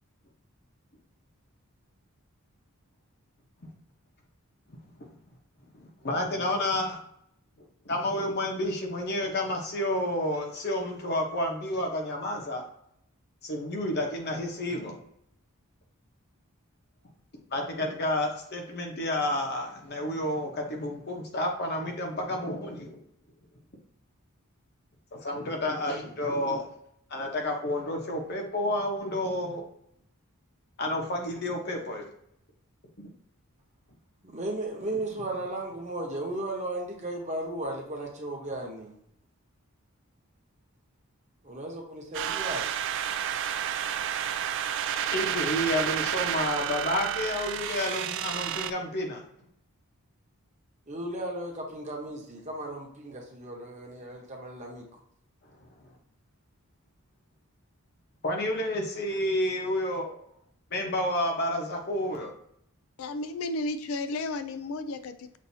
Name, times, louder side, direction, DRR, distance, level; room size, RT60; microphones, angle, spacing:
voice 1, 5.7-7.0 7.8-12.7 13.4-15.0 17.5-23.0 25.1-26.7 27.1-29.6 30.8-32.1 33.0-33.1 45.1-49.2 55.6-55.7 58.2-60.2 60.7-62.3, left 1 dB, 50° left, 1 dB, 1.0 m, -30 dB
voice 2, 34.2-38.9 41.4-42.7 50.9-54.9, right 1 dB, 30° right, 0 dB, 0.9 m, -35 dB
sound 1, 42.1-48.7, right 9 dB, 55° right, 0.3 m, -30 dB
voice 3, 63.0-65.4, left 2 dB, 75° left, 11 dB, 0.4 m, -33 dB
6.3 x 2.6 x 2.7 m, 0.73 s
head